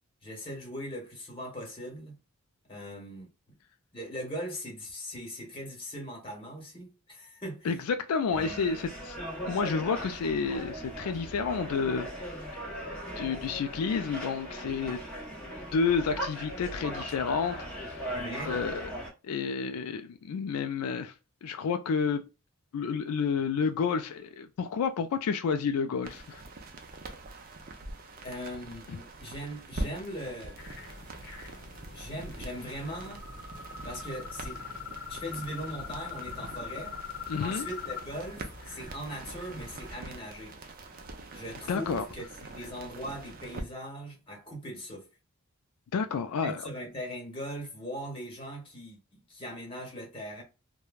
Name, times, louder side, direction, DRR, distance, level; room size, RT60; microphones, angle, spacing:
voice 1, 0.2-2.2 2.7-3.6 3.9-7.8 8.3-8.7 18.1-18.5 28.2-30.6 31.9-33.2 33.8-34.6 35.1-37.0 37.4-40.6 41.3-45.1 46.4-50.4, equal, 25° left, 1.2 m, -40 dB
voice 2, 7.6-9.2 9.5-12.1 13.2-15.0 15.7-18.9 19.2-21.1 21.4-22.3 22.7-26.4 37.3-37.7 41.7-42.0 45.9-46.7, left 5 dB, 80° left, 0.3 m, -30 dB
sound 1, 8.3-19.1, right 1 dB, 5° left, 0.8 m, -39 dB
sound 2, 26.0-43.6, right 2 dB, 40° right, 0.5 m, -44 dB
sound 3, 30.6-39.9, left 5 dB, 50° left, 0.8 m, -43 dB
3.1 x 2.2 x 2.3 m
head